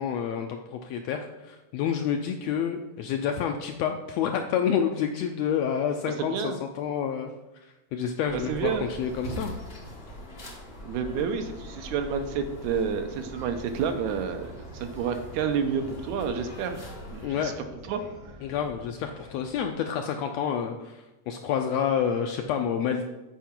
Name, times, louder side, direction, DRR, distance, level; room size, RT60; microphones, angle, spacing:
voice 1, 0.0-7.3 7.9-9.6 17.2-17.6 18.4-23.0, left 8 dB, 80° left, 5 dB, 1.5 m, -29 dB
voice 2, 6.2-6.6 8.3-8.9 10.8-16.8 17.1-17.5 17.9-18.0, right 6 dB, 80° right, 7 dB, 2.0 m, -29 dB
sound 1, 8.3-17.3, equal, 35° left, 1.0 m, -42 dB
sound 2, 13.2-19.7, equal, 50° left, 2.3 m, -48 dB
9.1 x 4.8 x 4.4 m, 1.1 s
omnidirectional pair, 3.4 m